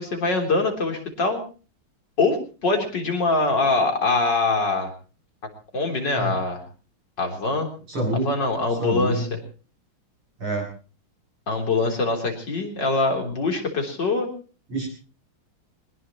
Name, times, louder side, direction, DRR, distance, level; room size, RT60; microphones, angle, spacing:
voice 1, 0.0-1.4 2.2-4.9 5.7-6.6 7.2-7.7 8.2-9.4 11.5-14.3, left 3 dB, 55° left, 3 dB, 4.3 m, -23 dB
voice 2, 7.9-8.3 8.8-9.3 10.4-10.7 14.7-14.9, right 2 dB, 85° right, 2 dB, 8.7 m, -26 dB
22.5 x 20.0 x 3.1 m, 0.37 s
omnidirectional pair, 2.3 m